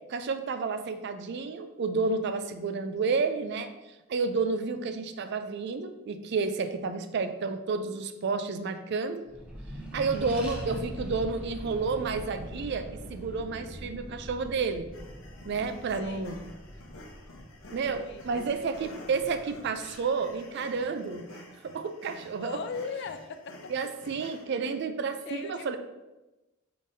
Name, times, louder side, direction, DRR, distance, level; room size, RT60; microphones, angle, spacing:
voice 1, 0.1-3.7 4.1-9.3 9.9-14.9 15.5-16.4 17.7-21.3 21.6-22.6 23.7-25.8, right 4 dB, 55° right, 9 dB, 0.4 m, -31 dB
Accelerating revving vroom, 9.3-20.2, equal, 5° right, 0.7 m, -42 dB
voice 2, 10.3-10.8 16.0-16.3 17.8-18.7 22.4-23.7 25.3-25.8, left 5 dB, 60° left, 9 dB, 0.4 m, -40 dB
sound 1, 14.9-24.4, left 2 dB, 75° left, 0.8 m, -49 dB
5.2 x 3.8 x 2.6 m, 1.0 s
head